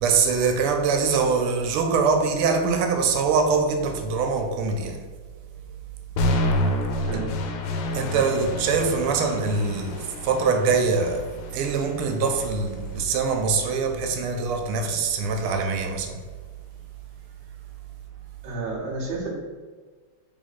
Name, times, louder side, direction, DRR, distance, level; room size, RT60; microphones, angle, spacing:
voice 1, 0.0-5.0 7.1-7.2 7.9-11.3 11.5-16.2, right 5 dB, 90° right, 1.5 m, -23 dB
sound 1, 6.2-14.2, left 1 dB, 85° left, 1.5 m, -29 dB
voice 2, 7.1-7.4 18.4-19.3, right 3 dB, 35° right, 0.8 m, -31 dB
3.9 x 3.0 x 4.1 m
omnidirectional pair, 2.4 m